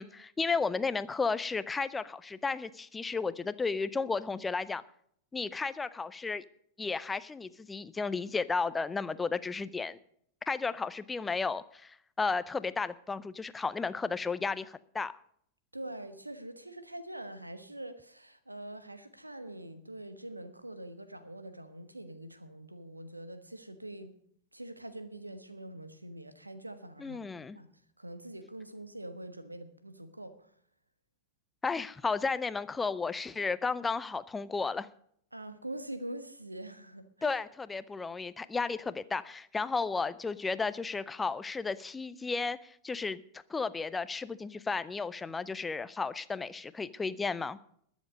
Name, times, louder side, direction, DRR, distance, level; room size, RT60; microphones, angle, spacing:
voice 1, 0.0-4.8 5.3-6.4 6.8-10.0 10.5-15.1 27.0-27.6 31.6-34.9 37.2-43.2 43.5-47.6, left 4 dB, 15° left, 0.6 m, -33 dB
voice 2, 15.7-24.2 24.5-27.3 27.5-27.7 28.0-30.5 35.3-37.4, right 1 dB, 85° right, 1.2 m, -44 dB
21.0 x 7.2 x 5.2 m
figure-of-eight pair, 90°, 0 cm